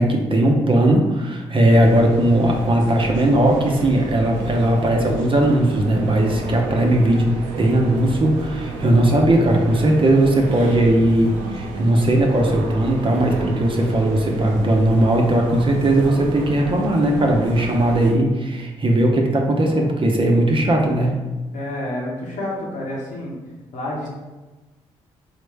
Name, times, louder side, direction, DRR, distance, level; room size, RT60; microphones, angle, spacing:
voice 1, 0.0-7.3 7.6-21.1, right 1 dB, 40° right, 1 dB, 0.8 m, -18 dB
sound 1, 1.7-18.1, right 3 dB, 85° right, 0.4 m, -32 dB
voice 2, 21.5-23.4 23.7-24.1, left 1 dB, 75° left, -3 dB, 1.0 m, -29 dB
4.1 x 2.1 x 3.3 m, 1.2 s
supercardioid pair, 45°, 13 cm